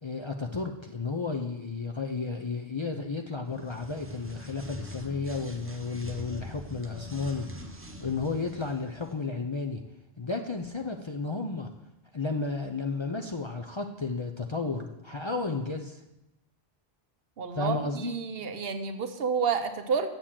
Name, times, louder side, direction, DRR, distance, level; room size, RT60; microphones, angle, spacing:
voice 1, 0.0-7.5 7.8-9.8 10.2-11.7 12.1-16.0 17.5-18.1, left 4 dB, 35° left, 3 dB, 0.5 m, -33 dB
sound 1, 3.5-9.2, left 1 dB, 15° right, 0.7 m, -43 dB
voice 2, 17.4-20.2, right 6 dB, 70° right, 8 dB, 1.0 m, -30 dB
7.5 x 6.7 x 7.4 m, 0.93 s
omnidirectional pair, 1.1 m